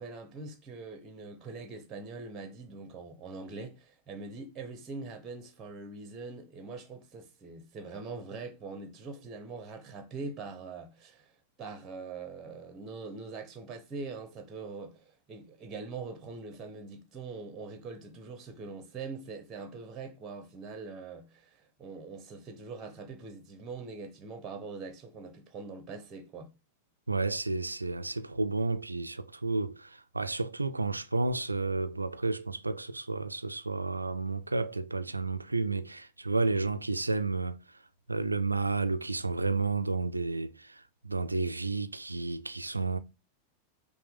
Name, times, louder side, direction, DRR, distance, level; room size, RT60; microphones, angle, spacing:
voice 1, 0.0-11.3 11.6-26.5, right 4 dB, 25° right, 0.8 m, -43 dB
voice 2, 27.1-37.6 38.1-43.0, right 3 dB, 80° right, 0.3 m, -31 dB
5.5 x 2.1 x 3.5 m
figure-of-eight pair, 90°, 0 cm